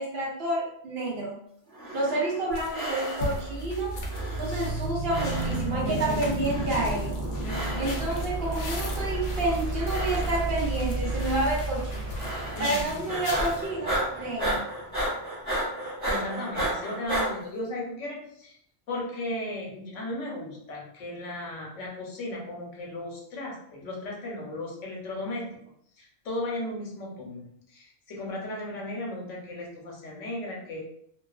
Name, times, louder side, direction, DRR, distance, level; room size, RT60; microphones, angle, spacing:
voice 1, 0.0-1.3 1.9-3.9 4.4-7.2 7.8-12.1 12.6-14.7, right 2 dB, 55° right, -3 dB, 0.9 m, -29 dB
sound 1, 1.7-2.4 2.7-3.5 4.1-4.8 5.1-5.8 6.4-7.0 7.4-8.1 8.7-9.3 9.8-10.6 11.0-11.5 12.2-12.8 13.1-17.3, right 1 dB, 20° right, 1.1 m, -33 dB
sound 2, 2.5-13.7, left 2 dB, 55° left, 0.6 m, -39 dB
sound 3, 3.2-15.2, right 2 dB, 15° left, 0.7 m, -32 dB
voice 2, 5.8-6.5 7.4-7.9 12.5-12.9 16.0-18.6 18.9-25.5 26.0-30.8, left 1 dB, 85° left, -2 dB, 1.1 m, -36 dB
2.4 x 2.4 x 2.3 m, 0.70 s
omnidirectional pair, 1.3 m